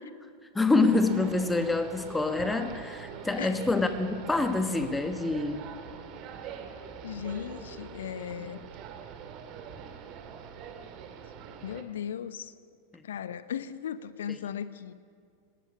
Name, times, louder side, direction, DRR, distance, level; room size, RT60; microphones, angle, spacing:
voice 1, 0.5-5.7, left 3 dB, 10° left, 8 dB, 1.4 m, -26 dB
sound 1, 0.7-11.8, right 7 dB, 40° right, 2.1 m, -43 dB
voice 2, 7.0-8.6 11.6-12.5 13.0-14.9, left 9 dB, 60° left, 15 dB, 0.8 m, -37 dB
19.0 x 18.0 x 8.6 m, 2.2 s
figure-of-eight pair, 90°, 0 cm